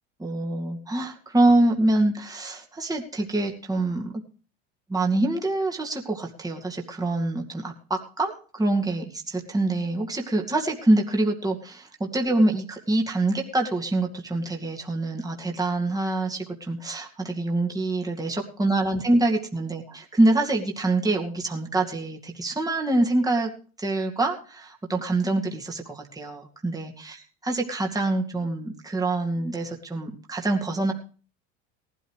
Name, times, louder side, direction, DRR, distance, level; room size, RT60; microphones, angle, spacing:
voice 1, 0.2-4.1 4.9-23.5 23.8-27.2 27.4-30.9, right 2 dB, 10° right, 1 dB, 2.2 m, -25 dB
18.5 x 12.5 x 3.2 m, 0.39 s
supercardioid pair, 100°, 32 cm